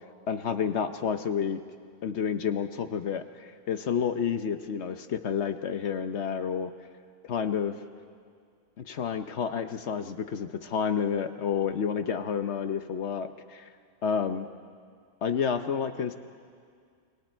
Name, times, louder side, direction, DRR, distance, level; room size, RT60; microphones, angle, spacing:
voice 1, 0.3-1.6 2.0-6.7 7.3-7.7 8.8-13.7 14.0-14.5 15.2-16.2, left 7 dB, 55° left, 9 dB, 0.8 m, -30 dB
29.5 x 24.0 x 4.5 m, 2.1 s
omnidirectional pair, 1.9 m